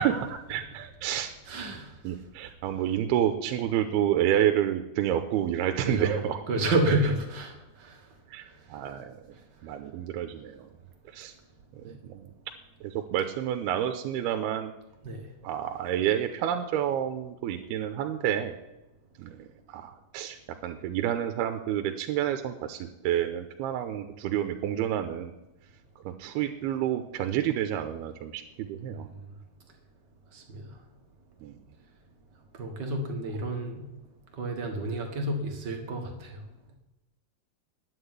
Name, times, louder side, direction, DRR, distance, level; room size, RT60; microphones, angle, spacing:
voice 1, 0.0-1.3 2.0-6.4 8.3-9.2 9.6-10.7 11.1-11.3 11.9-12.2 12.8-14.7 15.4-18.5 19.2-19.3 19.7-20.4 20.6-25.3 26.1-29.1 31.4-31.5, right 11 dB, 90° right, 7 dB, 2.7 m, -29 dB
voice 2, 1.5-1.9 5.9-8.0 11.9-12.0 15.0-15.2 28.9-29.0 30.3-30.7 32.5-33.9 34.4-36.4, right 2 dB, 60° right, 3 dB, 1.1 m, -30 dB
10.0 x 8.7 x 9.4 m, 1.0 s
omnidirectional pair, 4.6 m